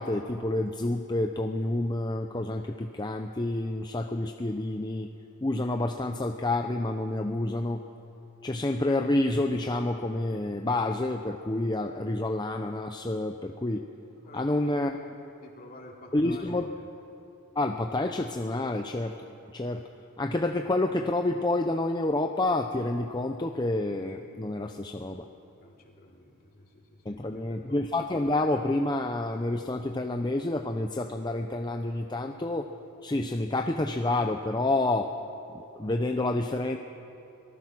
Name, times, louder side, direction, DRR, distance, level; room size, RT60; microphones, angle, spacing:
voice 1, 0.0-5.1 5.4-7.8 8.4-13.9 14.3-14.9 16.1-16.7 17.6-19.1 19.5-19.9 20.2-25.2 27.1-32.7 33.0-35.2 35.5-36.8, left 2 dB, 20° left, 5 dB, 0.6 m, -28 dB
voice 2, 14.2-15.0 15.4-16.9 25.6-27.8, left 1 dB, 45° left, 0 dB, 2.8 m, -49 dB
24.5 x 19.5 x 6.1 m, 2.7 s
head